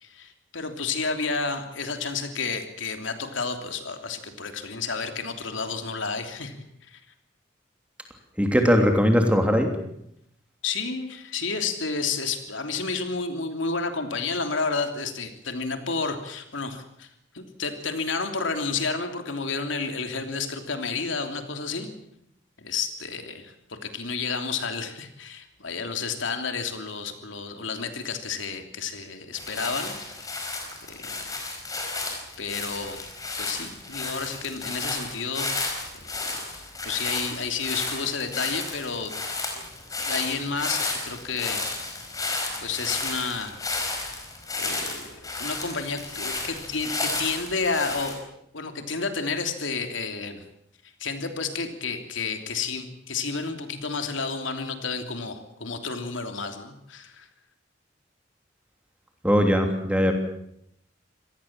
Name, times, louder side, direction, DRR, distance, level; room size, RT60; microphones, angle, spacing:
voice 1, 0.0-6.5 6.8-7.0 10.6-17.1 17.3-21.9 22.6-29.9 30.8-31.1 32.4-33.0 33.4-36.4 36.8-39.1 39.5-39.7 40.0-41.6 42.6-43.7 44.5-48.2 48.5-50.4 51.0-57.3, left 4 dB, 85° left, 6 dB, 3.1 m, -31 dB
voice 2, 8.4-9.7 59.2-60.1, equal, 5° right, 4 dB, 3.0 m, -20 dB
sound 1, 29.3-48.1, left 3 dB, 20° left, 4.9 m, -32 dB
26.5 x 18.5 x 7.5 m, 0.75 s
head